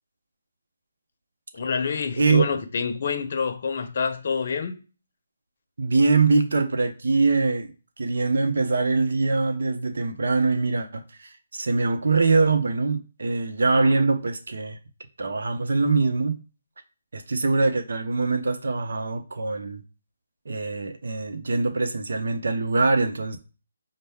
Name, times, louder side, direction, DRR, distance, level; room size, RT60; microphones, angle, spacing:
voice 1, 1.5-4.8, left 5 dB, 50° left, 0.6 m, -27 dB
voice 2, 5.8-7.7 8.0-14.8 15.2-16.4 17.1-19.8 20.5-23.4, right 3 dB, 70° right, 0.7 m, -23 dB
5.2 x 2.1 x 3.5 m
hypercardioid pair, 160°, 0 cm